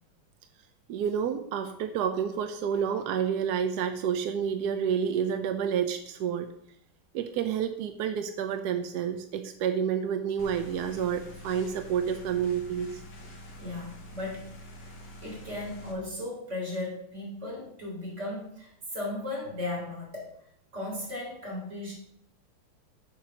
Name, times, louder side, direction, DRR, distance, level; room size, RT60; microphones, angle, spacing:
voice 1, 0.9-6.5 7.1-12.9, right 8 dB, 75° right, 7 dB, 0.9 m, -29 dB
sound 1, 10.4-15.9, equal, 55° left, 2.1 m, -46 dB
voice 2, 13.6-14.5 15.2-20.3 20.7-21.9, left 2 dB, 35° right, -3 dB, 4.3 m, -36 dB
7.5 x 5.9 x 6.0 m, 0.71 s
omnidirectional pair, 2.3 m